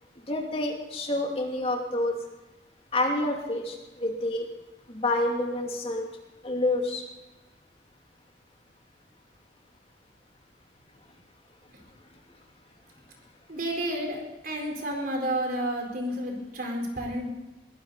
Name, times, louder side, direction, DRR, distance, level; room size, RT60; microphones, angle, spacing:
voice 1, 0.3-2.1 2.9-4.5 4.9-6.1 6.4-7.0, left 1 dB, 35° left, 1 dB, 2.7 m, -28 dB
voice 2, 13.5-14.2 14.4-17.3, right 1 dB, 50° right, 2 dB, 4.2 m, -30 dB
21.5 x 15.5 x 4.1 m, 1.1 s
head